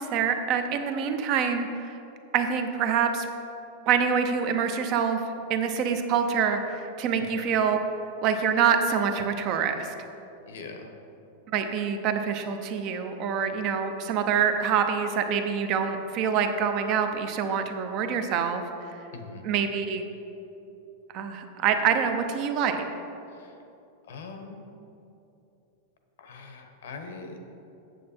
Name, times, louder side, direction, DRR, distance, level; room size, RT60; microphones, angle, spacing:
voice 1, 0.0-2.0 2.3-3.3 3.9-5.2 5.5-7.8 8.2-9.9 11.5-18.6 19.4-20.0 21.1-22.8, right 7 dB, 35° right, 7 dB, 0.6 m, -26 dB
voice 2, 10.5-10.9 19.1-19.4 23.3-23.5 24.0-24.6 26.2-27.4, left 4 dB, 80° left, 5 dB, 1.1 m, -42 dB
8.2 x 7.5 x 4.4 m, 2.8 s
supercardioid pair, 170°, 0 cm